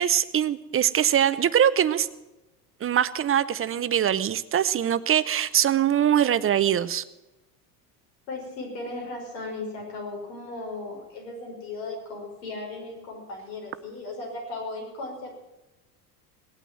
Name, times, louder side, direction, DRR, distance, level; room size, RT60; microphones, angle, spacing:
voice 1, 0.0-2.1 2.8-7.0, right 10 dB, 25° right, 15 dB, 0.7 m, -22 dB
voice 2, 8.3-15.3, left 2 dB, 85° left, -1 dB, 5.9 m, -36 dB
18.0 x 9.1 x 7.7 m, 1.0 s
hypercardioid pair, 85°, 48 cm